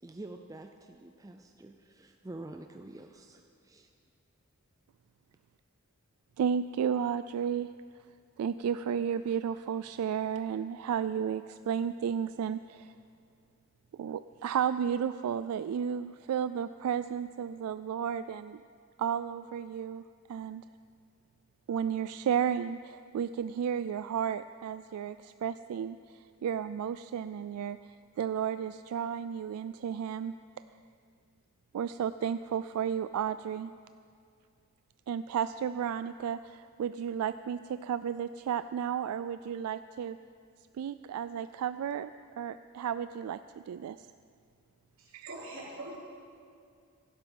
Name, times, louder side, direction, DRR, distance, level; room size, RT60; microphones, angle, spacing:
voice 1, 0.0-3.9, right 2 dB, 15° right, 4 dB, 0.4 m, -47 dB
voice 2, 6.4-7.7 8.4-12.9 13.9-18.6 19.0-20.0 20.3-20.6 21.7-30.3 31.7-33.7 35.1-40.2 40.7-43.4 43.7-44.1 45.1-45.3, right 8 dB, 85° right, 13 dB, 0.3 m, -33 dB
voice 3, 45.0-46.0, right 2 dB, 60° right, -5 dB, 3.9 m, -43 dB
16.0 x 12.0 x 5.4 m, 2.3 s
head